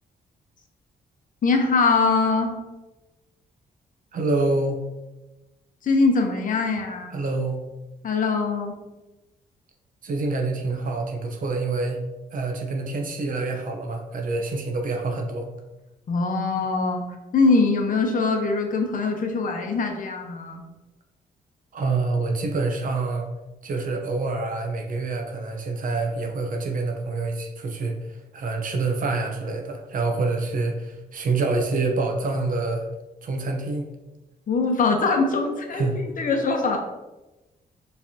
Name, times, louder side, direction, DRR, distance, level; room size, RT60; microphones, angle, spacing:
voice 1, 1.4-2.6 5.8-7.2 8.0-8.8 16.1-17.0 17.3-20.6 34.5-35.9 36.2-36.8, left 4 dB, 55° left, 3 dB, 0.8 m, -22 dB
voice 2, 4.1-4.9 7.1-7.6 10.0-12.0 12.3-15.5 21.7-23.3 23.6-32.9 33.2-33.9 35.7-36.0, right 3 dB, 55° right, 2 dB, 0.7 m, -26 dB
4.9 x 3.3 x 2.7 m, 1.1 s
cardioid pair, 90°, 17 cm